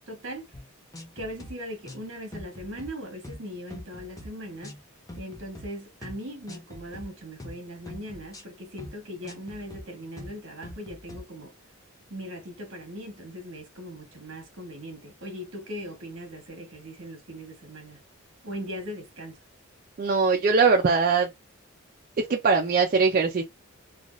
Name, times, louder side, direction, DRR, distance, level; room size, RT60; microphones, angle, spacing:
voice 1, 0.1-0.5 1.1-4.8 5.2-11.5 12.1-18.0 18.4-19.4, equal, 65° right, 1.2 m, -39 dB
sound 1, 0.5-0.7 0.9-1.5 1.9-2.0 2.3-2.9 3.2-3.4 3.7-4.3 4.6-4.8 5.1-5.7 6.0-6.2 6.5-7.1 7.4-7.6 7.9-8.4 8.8-9.0 9.2-9.8 10.2-10.4 10.6-11.2, left 1 dB, 15° left, 0.6 m, -42 dB
voice 2, 20.0-21.3 22.2-23.4, right 4 dB, 40° right, 0.4 m, -21 dB
3.3 x 2.3 x 2.5 m
head